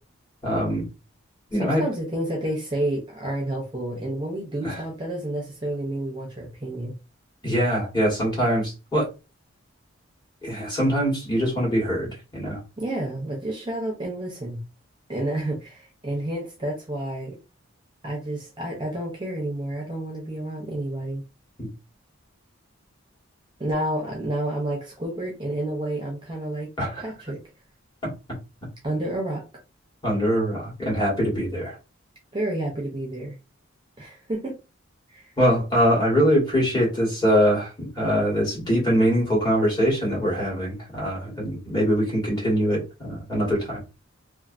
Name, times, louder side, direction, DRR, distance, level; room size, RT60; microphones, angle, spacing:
voice 1, 0.4-0.9 1.5-1.8 4.6-4.8 7.4-9.1 10.4-12.6 21.6-21.7 26.8-27.0 30.0-31.8 35.4-43.8, equal, 20° left, 1.3 m, -23 dB
voice 2, 1.5-7.0 12.8-14.6 15.1-17.4 18.0-21.2 23.6-26.7 27.0-27.4 28.8-29.4 32.3-33.4 34.0-34.6 35.1-35.3, right 1 dB, 20° right, 0.6 m, -30 dB
2.5 x 2.5 x 2.5 m
head